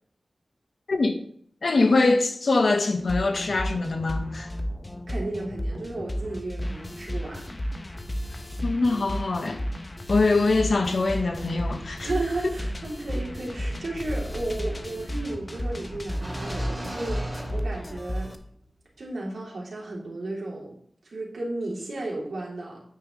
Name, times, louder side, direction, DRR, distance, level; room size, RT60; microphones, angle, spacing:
voice 1, 1.6-4.5 8.6-9.6 10.1-12.1, left 3 dB, 70° left, 1.3 m, -23 dB
sound 1, 2.9-18.4, equal, 30° left, 1.0 m, -33 dB
voice 2, 5.1-7.5 12.0-17.2 17.5-18.3 19.0-20.8 21.0-22.8, right 2 dB, 80° right, 3.3 m, -33 dB
sound 2, 11.4-18.3, right 1 dB, 15° right, 2.7 m, -40 dB
9.0 x 8.9 x 3.3 m
wide cardioid pair, 80°, 0 cm